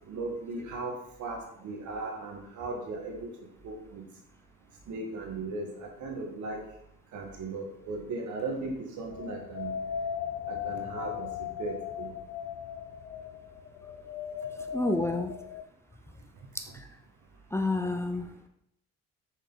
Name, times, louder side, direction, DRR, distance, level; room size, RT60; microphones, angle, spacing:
voice 1, 0.1-3.3 3.6-4.1 4.9-6.6 7.1-9.7 10.5-12.1, right 3 dB, 75° right, 2 dB, 1.7 m, -37 dB
sound 1, 9.1-15.6, left 8 dB, 60° left, 0.5 m, -37 dB
voice 2, 14.7-15.4 16.6-16.7 17.5-18.3, left 2 dB, 10° left, 6 dB, 0.5 m, -29 dB
6.5 x 4.9 x 3.9 m, 0.74 s
cardioid pair, 90°, 30 cm